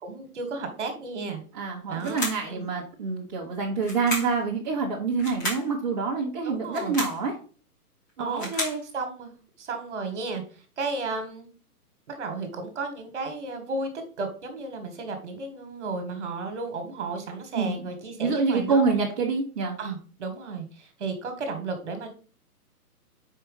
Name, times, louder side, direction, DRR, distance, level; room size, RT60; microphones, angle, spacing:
voice 1, 0.0-1.4 1.9-2.7 6.4-7.0 8.2-8.5 8.9-11.5 12.1-13.9 14.2-18.8 19.8-22.1, right 3 dB, 45° right, 6 dB, 1.7 m, -33 dB
voice 2, 1.5-7.3 8.2-8.8 17.6-17.8 18.2-19.8, right 4 dB, 25° right, -5 dB, 1.0 m, -27 dB
sound 1, 2.0-2.5 3.8-4.4 5.2-5.7 6.6-7.2 8.1-8.8, equal, 10° left, 0.9 m, -32 dB
4.7 x 4.2 x 5.5 m, 0.39 s
hypercardioid pair, 165°, 47 cm